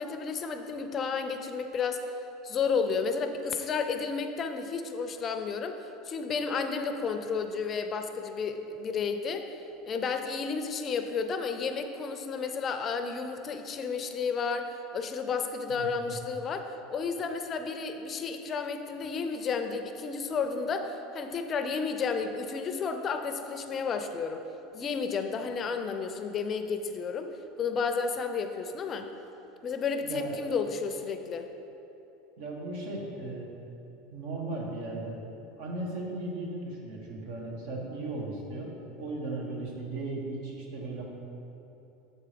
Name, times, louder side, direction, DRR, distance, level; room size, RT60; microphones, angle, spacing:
voice 1, 0.0-2.0 2.4-5.8 6.1-9.5 9.8-24.4 24.7-27.3 27.6-29.1 29.6-31.5, left 5 dB, 30° left, 7 dB, 0.4 m, -32 dB
voice 2, 15.7-16.1 30.0-30.4 32.4-33.5 34.1-35.1 35.6-38.7 39.0-41.0, right 2 dB, 70° right, -1 dB, 1.5 m, -36 dB
7.1 x 4.7 x 5.1 m, 2.9 s
supercardioid pair, 125°, 0 cm